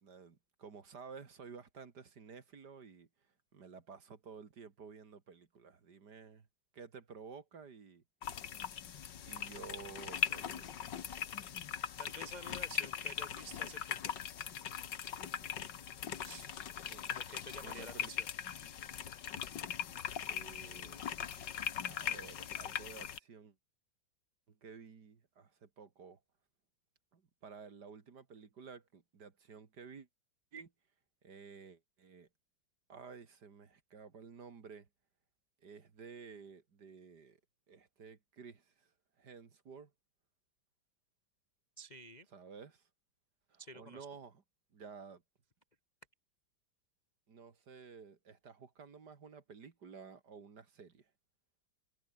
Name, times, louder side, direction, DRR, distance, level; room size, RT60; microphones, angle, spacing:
voice 1, 0.0-6.5 6.7-8.0 9.2-10.9 16.8-17.2 17.6-18.1 20.3-21.3 21.8-23.6 24.5-26.2 27.1-30.1 30.5-30.7 31.2-32.3 32.9-34.9 35.6-37.4 37.7-38.9 39.2-39.9 42.3-42.9 43.5-44.4 44.7-45.2 47.3-51.1, right 5 dB, 55° right, 2.7 m, -53 dB
sound 1, 8.2-23.2, left 9 dB, 65° left, 1.9 m, -40 dB
voice 2, 12.0-14.2 16.2-16.5 17.1-18.3 41.8-42.3 43.6-44.1, right 1 dB, 30° left, 0.9 m, -50 dB
omnidirectional pair, 2.2 m